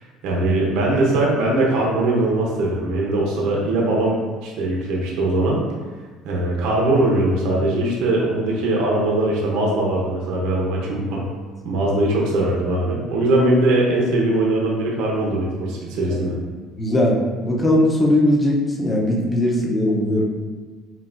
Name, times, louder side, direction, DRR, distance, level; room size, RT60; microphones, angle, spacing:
voice 1, 0.2-5.6 6.2-11.2 11.6-16.3, right 2 dB, 75° right, -3 dB, 0.7 m, -20 dB
voice 2, 16.8-20.2, left 1 dB, 15° left, -2 dB, 0.6 m, -19 dB
5.6 x 2.3 x 2.5 m, 1.4 s
cardioid pair, 150°, 0 cm